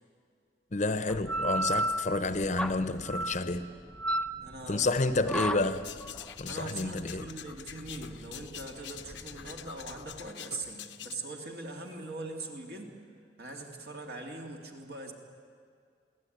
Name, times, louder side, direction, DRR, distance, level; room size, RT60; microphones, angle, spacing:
voice 1, 0.7-3.7 4.7-5.9 6.4-7.3, left 2 dB, 40° left, 0.8 m, -30 dB
sound 1, 1.1-10.3, right 1 dB, 5° left, 0.5 m, -35 dB
voice 2, 4.4-5.4 6.5-13.0 13.4-15.1, right 2 dB, 60° right, 2.8 m, -42 dB
sound 2, 5.6-11.1, left 10 dB, 90° left, 0.9 m, -46 dB
22.5 x 16.5 x 9.5 m
head